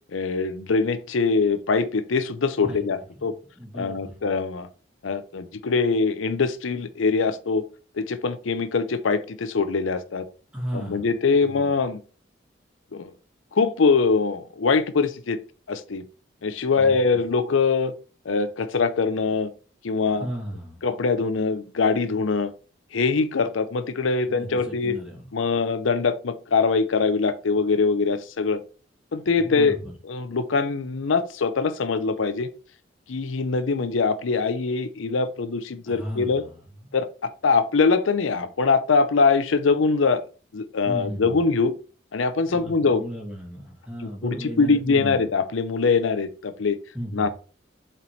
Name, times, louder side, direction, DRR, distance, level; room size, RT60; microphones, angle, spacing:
voice 1, 0.1-3.3 3.7-4.7 5.0-7.6 8.0-10.3 10.7-12.0 12.9-13.1 13.5-15.4 15.7-16.0 16.4-17.9 18.3-19.5 19.8-20.3 20.8-22.5 22.9-25.0 25.3-28.6 29.1-29.8 30.0-32.5 33.1-36.4 36.9-40.2 40.5-41.7 42.1-43.0 44.0-46.8 47.1-47.3, left 4 dB, 85° left, 0.6 m, -23 dB
voice 2, 3.6-4.2 10.5-11.1 11.5-11.7 16.8-17.0 20.2-20.8 24.2-25.2 29.4-29.9 35.9-36.6 40.8-41.4 42.5-45.2 46.9-47.3, equal, 5° right, 2.1 m, -35 dB
7.2 x 4.3 x 3.1 m
head